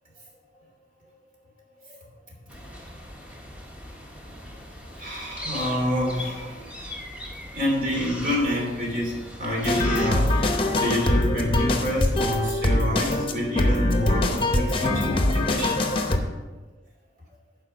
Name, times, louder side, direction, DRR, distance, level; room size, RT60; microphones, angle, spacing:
sound 1, 2.5-10.3, left 1 dB, 5° right, 1.1 m, -39 dB
voice 1, 5.0-6.7 7.5-16.4, left 1 dB, 45° right, -2 dB, 2.8 m, -28 dB
sound 2, 9.6-16.2, left 1 dB, 30° left, 0.8 m, -23 dB
11.5 x 4.9 x 5.1 m, 1.2 s
head